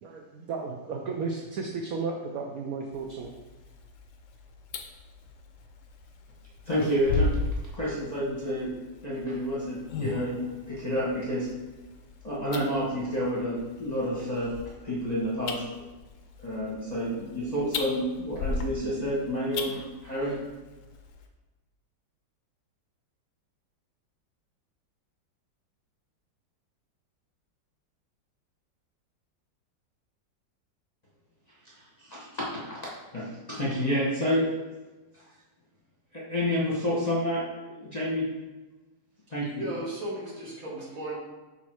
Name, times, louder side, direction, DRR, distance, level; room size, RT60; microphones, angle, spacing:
voice 1, 0.0-3.3, right 4 dB, 70° right, 1 dB, 0.9 m, -34 dB
sound 1, 2.9-21.3, left 3 dB, 65° left, 0.8 m, -37 dB
voice 2, 6.7-7.3 7.7-8.7 9.0-11.5 12.2-14.5 14.8-15.6 16.4-20.4 31.6-32.8 33.1-34.5 35.1-35.2 36.1-38.3 39.3-39.6, equal, 25° left, -7 dB, 1.0 m, -29 dB
voice 3, 39.6-41.2, right 1 dB, 50° right, -4 dB, 1.7 m, -35 dB
6.0 x 3.8 x 4.5 m, 1.2 s
omnidirectional pair, 2.0 m